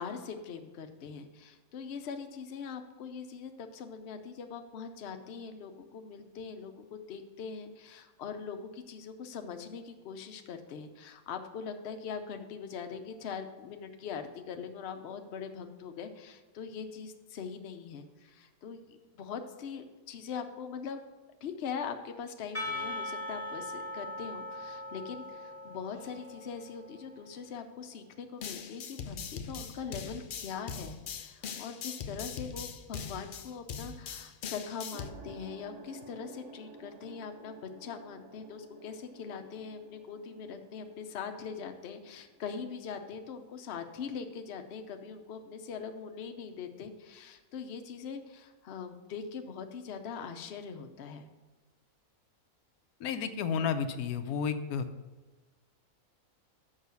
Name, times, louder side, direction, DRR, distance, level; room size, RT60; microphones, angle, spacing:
voice 1, 0.0-21.0 21.4-51.3, left 6 dB, 55° left, 6 dB, 0.8 m, -42 dB
Percussion / Church bell, 22.5-27.3, left 2 dB, 10° left, 1.0 m, -40 dB
sound 1, 28.4-35.1, left 6 dB, 70° left, 0.5 m, -41 dB
sound 2, 34.9-43.6, right 3 dB, 65° right, 1.2 m, -54 dB
voice 2, 53.0-54.9, left 6 dB, 90° left, 9 dB, 1.1 m, -31 dB
6.5 x 5.5 x 6.8 m, 1.2 s
omnidirectional pair, 1.5 m